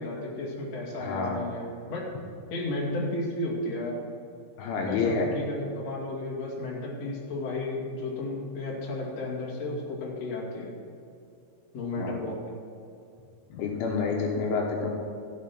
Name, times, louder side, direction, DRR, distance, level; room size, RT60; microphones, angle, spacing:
voice 1, 0.0-2.1 2.5-4.0 4.9-10.7 11.7-12.4, left 2 dB, 40° left, -3 dB, 2.8 m, -33 dB
voice 2, 1.0-1.5 4.6-5.3 12.0-12.1 13.5-14.9, left 4 dB, 75° left, 0 dB, 3.5 m, -28 dB
15.5 x 7.9 x 6.0 m, 2.6 s
omnidirectional pair, 5.8 m